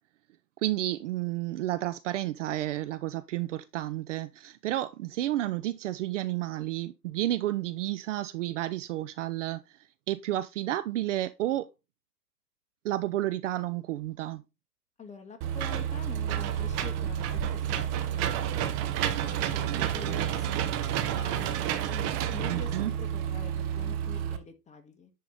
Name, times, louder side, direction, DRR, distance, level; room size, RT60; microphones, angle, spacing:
voice 1, 0.6-9.6 10.1-11.7 12.8-14.4 19.6-20.2 22.5-22.9, right 14 dB, 50° right, 0.6 m, -31 dB
voice 2, 15.0-21.6 21.9-25.1, left 5 dB, 15° left, 1.5 m, -46 dB
Engine / Mechanisms, 15.4-24.4, right 10 dB, 30° right, 1.1 m, -30 dB
10.0 x 4.7 x 3.9 m
figure-of-eight pair, 105°, 49 cm